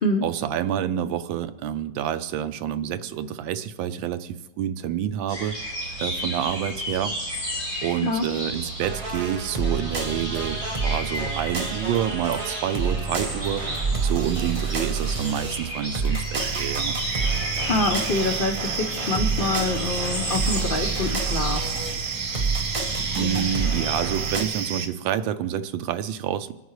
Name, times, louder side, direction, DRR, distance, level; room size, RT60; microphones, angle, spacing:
voice 1, 0.2-5.6 6.0-7.1 7.8-13.6 14.0-17.0 23.2-26.5, right 10 dB, 80° right, 12 dB, 1.4 m, -28 dB
sound 1, 5.3-24.0, equal, 15° left, 5.6 m, -34 dB
sound 2, 8.8-24.4, right 4 dB, 30° right, 0.6 m, -29 dB
sound 3, 16.3-24.9, right 6 dB, 55° right, 1.0 m, -31 dB
voice 2, 17.7-21.6 23.2-23.4, left 2 dB, 65° left, 4 dB, 0.5 m, -26 dB
26.0 x 9.2 x 3.2 m, 1.1 s
omnidirectional pair, 2.1 m